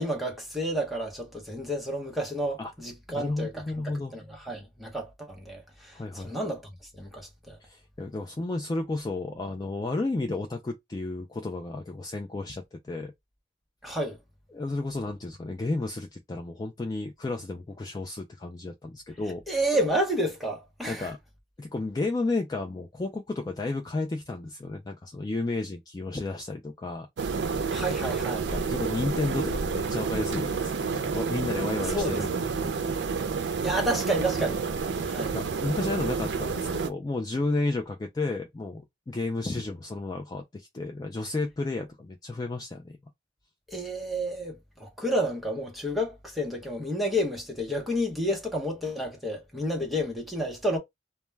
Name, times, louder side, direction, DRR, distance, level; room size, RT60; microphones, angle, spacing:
voice 1, 0.0-6.6 6.9-7.6 13.8-14.2 19.5-21.1 27.7-28.5 31.9-32.2 33.6-34.6 35.0-35.3 43.7-50.8, equal, ahead, 0.7 m, -30 dB
voice 2, 3.1-4.1 5.9-6.3 7.6-13.1 14.5-19.4 20.9-21.2 21.6-27.1 28.5-32.7 35.3-42.9, left 2 dB, 25° left, 0.3 m, -32 dB
sound 1, 27.2-36.9, right 5 dB, 80° right, 0.4 m, -29 dB
2.2 x 2.1 x 3.2 m
head